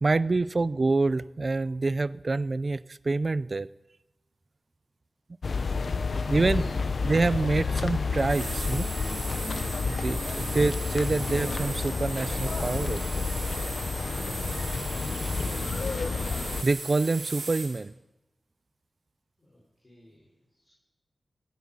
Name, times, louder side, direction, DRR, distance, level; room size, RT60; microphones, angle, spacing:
voice 1, 0.0-3.7 6.3-6.8 7.0-8.9 9.9-13.3 16.6-17.9, right 3 dB, 40° right, 18 dB, 0.4 m, -26 dB
sound 1, 5.4-16.6, left 4 dB, 60° left, 0.8 m, -30 dB
sound 2, 8.2-17.8, right 3 dB, 85° right, 4.6 m, -38 dB
voice 2, 19.4-20.7, left 1 dB, 30° left, -5 dB, 4.6 m, -56 dB
15.0 x 9.5 x 8.7 m, 1.0 s
wide cardioid pair, 125°, 0 cm